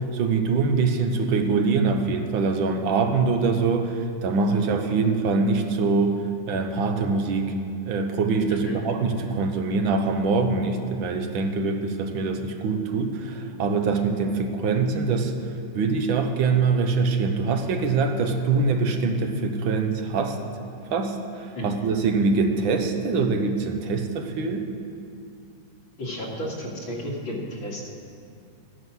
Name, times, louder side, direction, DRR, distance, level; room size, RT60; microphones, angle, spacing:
voice 1, 0.0-6.2 6.5-7.5 7.9-15.3 15.7-20.4 20.9-24.6, right 4 dB, 85° right, 6 dB, 1.7 m, -24 dB
voice 2, 26.0-27.9, equal, 90° left, -3 dB, 2.9 m, -33 dB
14.0 x 9.5 x 6.2 m, 2.5 s
omnidirectional pair, 2.1 m